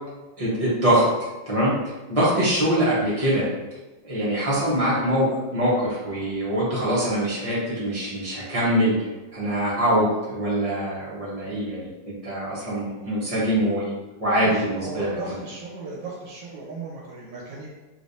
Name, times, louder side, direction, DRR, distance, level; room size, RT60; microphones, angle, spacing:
voice 1, 0.4-1.1 1.5-1.7 2.1-3.4 4.0-9.0 9.3-15.2, right 1 dB, 35° right, -8 dB, 0.5 m, -23 dB
voice 2, 14.4-17.7, right 3 dB, 70° right, -4 dB, 1.3 m, -36 dB
3.3 x 3.2 x 2.7 m, 1.1 s
omnidirectional pair, 2.3 m